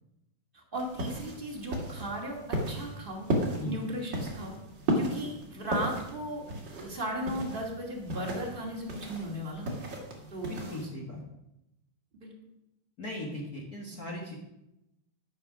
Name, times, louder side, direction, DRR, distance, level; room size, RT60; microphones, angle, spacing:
voice 1, 0.5-3.3 3.6-4.6 4.9-6.4 6.7-9.7 10.3-10.6 12.1-12.3, equal, 20° right, -1 dB, 1.4 m, -36 dB
sound 1, 0.7-10.9, right 1 dB, 40° right, 2.1 m, -35 dB
voice 2, 10.4-11.2 13.0-14.3, left 1 dB, 55° left, -2 dB, 1.0 m, -38 dB
12.0 x 6.6 x 6.1 m, 0.90 s
omnidirectional pair, 4.1 m